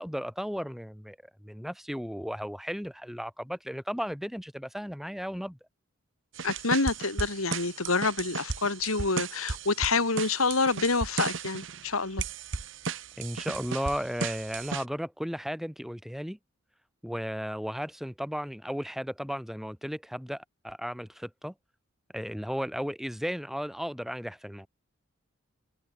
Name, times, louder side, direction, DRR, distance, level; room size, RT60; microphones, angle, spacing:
voice 1, 0.0-5.6 13.2-16.4 17.0-21.5 22.1-24.7, equal, ahead, 4.5 m, -35 dB
voice 2, 6.4-12.2, left 3 dB, 85° left, 2.8 m, -27 dB
sound 1, 6.4-11.9 12.2-14.8, right 4 dB, 60° right, 1.1 m, -35 dB
head